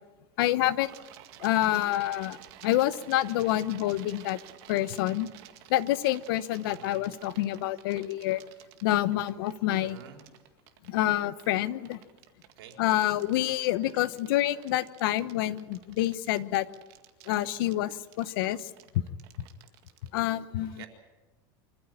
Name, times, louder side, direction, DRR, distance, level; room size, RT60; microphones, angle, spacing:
voice 1, 0.4-0.9 1.4-2.4 2.6-4.4 4.7-5.3 5.7-8.4 8.8-10.0 10.9-12.0 12.8-16.6 17.3-18.6 20.1-20.8, left 14 dB, 70° left, 15 dB, 1.0 m, -27 dB
sound 1, 0.8-20.2, right 13 dB, 50° right, 2.0 m, -51 dB
voice 2, 6.6-7.1 9.8-10.3 12.6-12.8 20.6-20.9, right 9 dB, 85° right, 3 dB, 4.2 m, -49 dB
25.0 x 15.0 x 8.9 m, 1.2 s
supercardioid pair, 155°, 12 cm